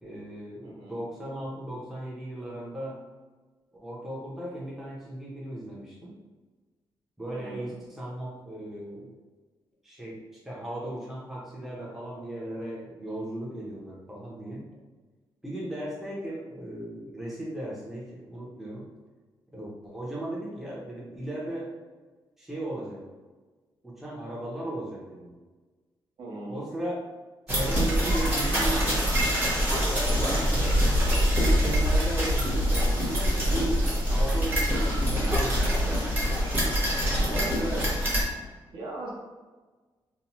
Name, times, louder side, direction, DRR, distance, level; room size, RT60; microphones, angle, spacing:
voice 1, 0.0-3.0 3.8-6.1 7.2-9.1 9.8-14.7 15.4-18.8 19.5-21.7 22.4-23.0 23.8-25.4 26.5-27.0 27.5-29.0 29.9-30.8 31.5-33.8 34.1-36.4, right 1 dB, 5° right, -6 dB, 0.5 m, -36 dB
voice 2, 0.6-1.0 7.3-7.8 26.2-26.7 30.2-30.3 37.3-37.8 38.7-39.2, right 2 dB, 65° right, -5 dB, 0.8 m, -38 dB
sound 1, 27.5-38.2, equal, 20° right, 0.9 m, -24 dB
2.8 x 2.0 x 2.9 m, 1.3 s
wide cardioid pair, 155°, 9 cm